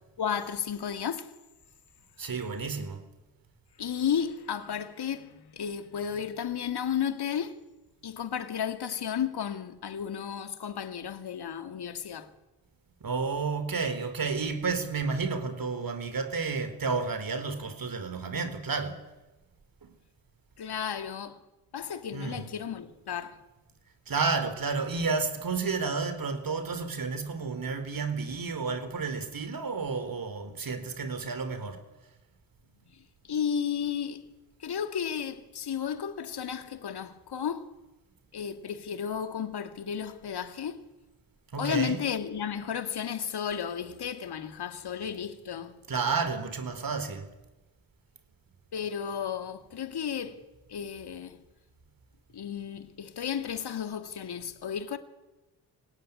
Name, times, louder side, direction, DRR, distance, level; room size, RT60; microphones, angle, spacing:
voice 1, 0.2-1.3 3.8-7.6 8.0-12.3 20.6-21.4 21.7-23.4 32.9-34.2 34.6-37.7 38.3-40.8 41.6-45.8 48.7-50.4 50.7-51.4 52.3-55.0, left 8 dB, 55° left, 2.5 m, -33 dB
voice 2, 2.2-3.1 13.0-19.0 19.8-19.9 22.1-22.5 24.1-31.8 41.5-42.0 45.9-47.3, right 4 dB, 45° right, 4.0 m, -31 dB
25.0 x 17.5 x 9.6 m
supercardioid pair, 55°, 47 cm